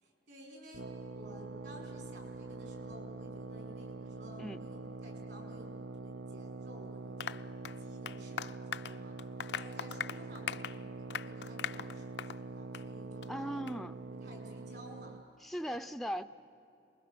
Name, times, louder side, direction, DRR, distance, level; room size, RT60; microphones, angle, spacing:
voice 1, 0.0-7.5 7.8-9.1 9.5-13.6 14.2-15.2 15.5-15.8, equal, 65° right, 5.6 m, -54 dB
sound 1, 0.7-15.2, right 3 dB, 85° right, 0.6 m, -45 dB
Applause, 7.2-12.4 12.7-12.9 13.2-13.3 13.7-13.8, left 8 dB, 70° left, 0.5 m, -41 dB
voice 2, 13.3-14.0 15.4-16.2, equal, ahead, 0.5 m, -38 dB
28.0 x 21.0 x 6.8 m
head